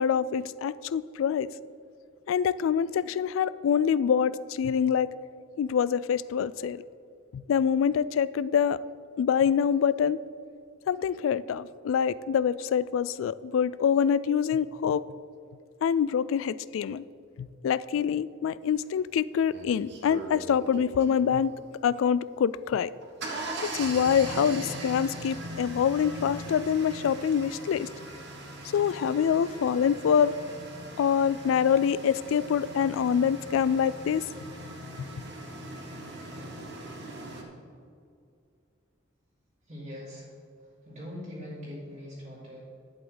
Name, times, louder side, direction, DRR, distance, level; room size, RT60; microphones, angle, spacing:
voice 1, 0.0-1.5 2.3-5.1 5.6-6.8 7.3-8.8 9.2-10.2 10.9-15.0 15.8-17.0 17.4-21.5 21.8-22.9 23.7-27.9 28.7-30.3 31.0-34.2, left 7 dB, 85° left, 17 dB, 0.3 m, -25 dB
sound 1, 18.8-18.9 19.5-21.4 22.8-37.4, right 1 dB, 60° right, 1.3 m, -40 dB
voice 2, 39.7-40.4 40.8-42.6, left 1 dB, 40° right, -10 dB, 2.3 m, -41 dB
11.0 x 7.8 x 3.9 m, 2.4 s
head